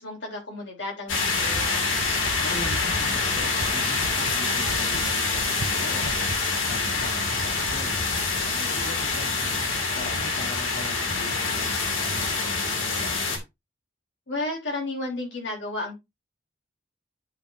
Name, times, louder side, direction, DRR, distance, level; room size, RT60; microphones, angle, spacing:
voice 1, 0.0-1.8 14.3-16.0, left 2 dB, 65° left, 3.2 m, -32 dB
sound 1, 1.1-13.4, left 4 dB, 85° left, 2.4 m, -26 dB
sound 2, 1.5-10.5 10.8-11.2 11.6-11.9, right 2 dB, 60° right, 0.8 m, -39 dB
voice 2, 2.4-8.0 8.4-13.4, left 1 dB, 50° left, 2.5 m, -41 dB
10.5 x 5.3 x 2.6 m
head